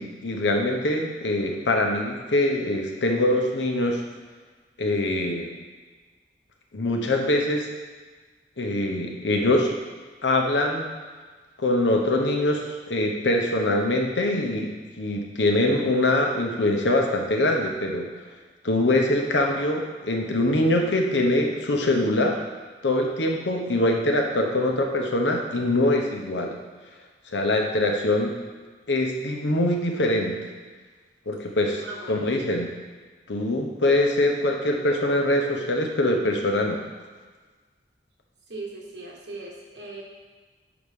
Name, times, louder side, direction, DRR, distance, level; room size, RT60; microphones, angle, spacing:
voice 1, 0.0-4.0 4.8-5.5 6.7-7.7 8.6-9.7 10.2-10.9 11.6-18.1 18.6-22.4 22.8-26.6 27.3-28.3 28.9-30.4 31.3-31.8 32.1-32.7 33.3-36.8, left 1 dB, 85° left, 2 dB, 1.0 m, -23 dB
voice 2, 31.8-32.2 38.5-40.0, right 2 dB, 75° right, -2 dB, 1.5 m, -38 dB
6.1 x 5.0 x 5.4 m, 1.4 s
head